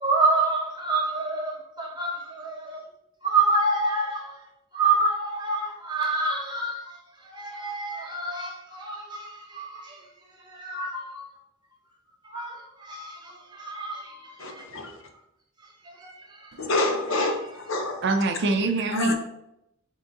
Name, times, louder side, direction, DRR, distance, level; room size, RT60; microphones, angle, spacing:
voice 1, 0.0-2.8 3.2-4.4 4.7-6.9 7.2-10.0 10.4-11.3 12.3-14.6 15.8-16.5, right 3 dB, 20° right, 1.1 m, -28 dB
voice 2, 14.4-14.9 16.6-18.0 18.9-19.1, left 2 dB, 65° left, 0.7 m, -26 dB
voice 3, 18.0-19.1, right 3 dB, 55° right, 0.5 m, -25 dB
3.8 x 3.6 x 3.9 m
head